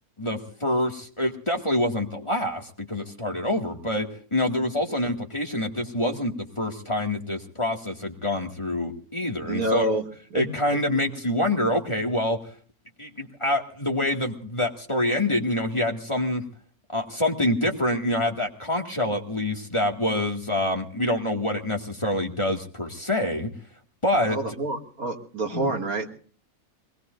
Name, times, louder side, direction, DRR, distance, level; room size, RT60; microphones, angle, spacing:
voice 1, 0.2-9.9 10.3-12.4 13.0-16.4 16.9-23.5 24.0-24.6 25.5-25.7, left 1 dB, 20° left, 2 dB, 2.1 m, -26 dB
voice 2, 9.5-10.0 10.3-10.4 10.7-10.8 24.3-26.1, right 1 dB, 75° right, 2 dB, 2.7 m, -27 dB
24.5 x 20.0 x 2.6 m, 0.43 s
omnidirectional pair, 1.5 m